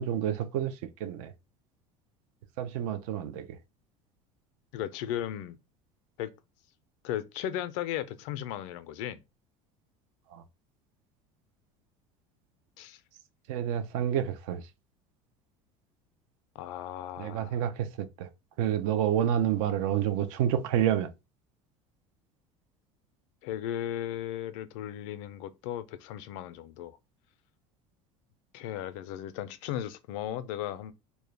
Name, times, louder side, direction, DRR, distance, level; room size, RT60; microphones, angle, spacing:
voice 1, 0.0-1.3 2.6-3.6 10.3-10.4 13.5-14.7 17.2-18.3 18.6-21.1, right 10 dB, 75° right, 0.4 m, -29 dB
voice 2, 4.7-5.6 6.2-6.3 7.0-9.2 12.8-13.0 16.6-17.7 23.4-27.0 28.5-30.9, left 11 dB, 75° left, 0.4 m, -36 dB
2.2 x 2.0 x 3.1 m
supercardioid pair, 90°, 17 cm